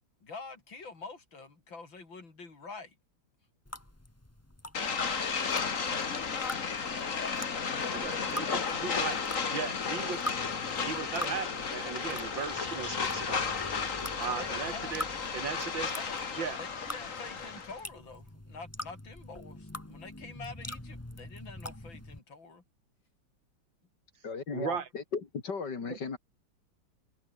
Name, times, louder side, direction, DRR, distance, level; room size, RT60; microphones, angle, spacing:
voice 1, 0.2-3.0 7.6-8.6 14.3-14.9 15.6-15.7 16.0-16.1 16.6-22.6, left 4 dB, 85° left, 5.0 m, -46 dB
sound 1, 3.7-22.2, left 1 dB, 10° left, 1.7 m, -45 dB
sound 2, 4.7-17.8, left 5 dB, 45° left, 2.1 m, -33 dB
voice 2, 7.9-8.5 8.8-9.2 9.5-10.3 10.7-13.6 14.2-15.0 15.3-15.9 16.4-16.6 24.5-24.9 25.9-26.0, right 7 dB, 80° right, 2.7 m, -37 dB
voice 3, 24.2-26.2, left 5 dB, 60° left, 3.4 m, -36 dB
omnidirectional pair, 2.1 m